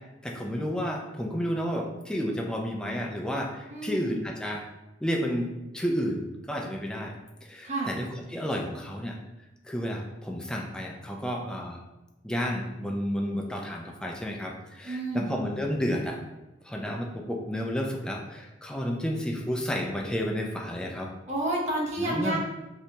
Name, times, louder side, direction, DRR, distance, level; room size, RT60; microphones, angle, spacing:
voice 1, 0.2-4.6 5.0-7.1 7.5-9.2 9.7-11.8 12.2-16.2 16.7-21.1 22.0-22.4, equal, 5° left, 0 dB, 0.3 m, -31 dB
voice 2, 3.7-4.3 7.6-7.9 14.8-15.3 21.3-22.4, right 1 dB, 40° right, -2 dB, 0.6 m, -30 dB
3.2 x 2.8 x 2.7 m, 1.0 s
head